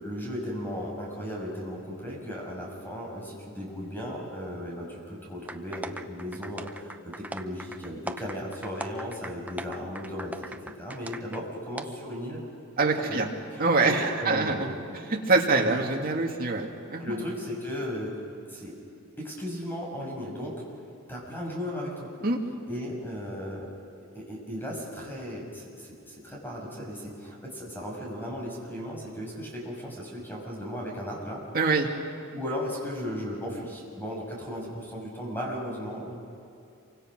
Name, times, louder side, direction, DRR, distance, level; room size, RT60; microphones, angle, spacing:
voice 1, 0.0-10.5 10.8-12.4 12.8-14.7 15.6-15.8 17.0-18.2 18.5-18.8 19.2-20.6 21.1-22.1 22.7-23.7 24.1-31.4 32.3-36.1, equal, 10° left, -2 dB, 6.2 m, -36 dB
sound 1, 5.5-11.4 11.8-11.9, right 2 dB, 5° right, 0.7 m, -39 dB
voice 2, 12.8-13.3 13.6-14.7 15.1-17.2 22.2-22.4 31.5-31.9, right 3 dB, 45° right, 0 dB, 2.4 m, -25 dB
27.5 x 24.5 x 6.2 m, 2.6 s
head